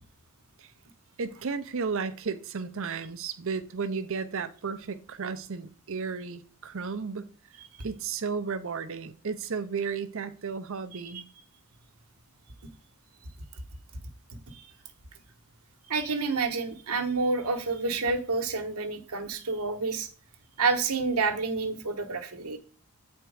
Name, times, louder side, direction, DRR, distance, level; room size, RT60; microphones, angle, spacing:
voice 1, 1.2-7.3 7.8-11.2, right 5 dB, 65° right, 0.6 m, -33 dB
voice 2, 10.9-11.2 14.5-14.7 15.9-20.1 20.6-22.6, right 4 dB, 90° right, 1.1 m, -29 dB
7.9 x 4.4 x 4.8 m
head